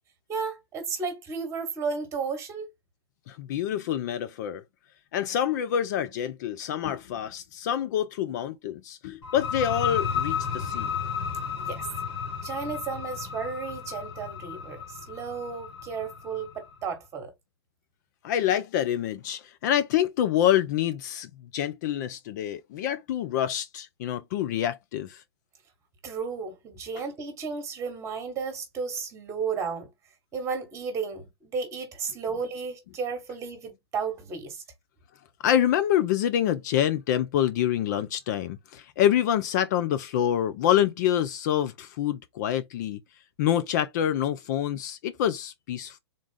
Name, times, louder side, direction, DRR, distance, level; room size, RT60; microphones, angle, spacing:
voice 1, 0.3-2.7 11.6-11.9 12.4-17.3 26.0-29.9 30.3-34.6, right 5 dB, 20° right, 1.3 m, -33 dB
voice 2, 3.3-4.6 5.1-10.9 18.2-25.2 35.4-43.0 43.4-46.0, left 10 dB, 45° left, 0.4 m, -26 dB
sound 1, 9.2-16.7, left 7 dB, 65° left, 1.9 m, -33 dB
3.7 x 2.4 x 3.7 m
hypercardioid pair, 130°, 14 cm